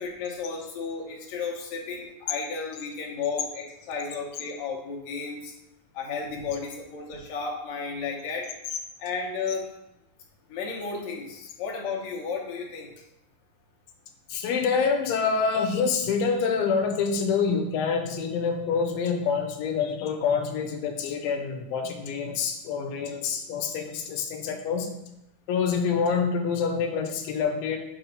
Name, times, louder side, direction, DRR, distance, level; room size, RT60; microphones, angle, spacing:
voice 1, 0.0-5.5 5.9-8.5 9.0-9.7 10.5-12.9, left 5 dB, 65° left, -1 dB, 1.9 m, -33 dB
voice 2, 14.3-24.9 25.5-27.8, left 5 dB, 85° left, 4 dB, 2.4 m, -26 dB
7.3 x 3.0 x 5.1 m, 0.87 s
omnidirectional pair, 4.2 m